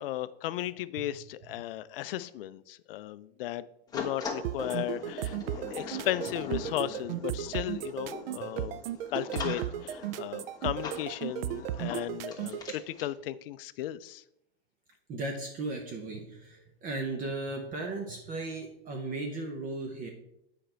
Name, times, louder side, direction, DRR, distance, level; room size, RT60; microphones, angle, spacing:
voice 1, 0.0-3.7 3.9-5.4 5.7-8.8 9.1-14.2, left 14 dB, 60° left, 16 dB, 0.4 m, -35 dB
sound 1, 3.9-13.1, left 5 dB, 10° left, 1.2 m, -42 dB
sound 2, 4.4-12.7, right 12 dB, 60° right, 0.5 m, -35 dB
voice 2, 15.1-20.1, right 2 dB, 25° right, 3 dB, 0.8 m, -36 dB
7.8 x 5.2 x 4.4 m, 0.81 s
hypercardioid pair, 140°, 33 cm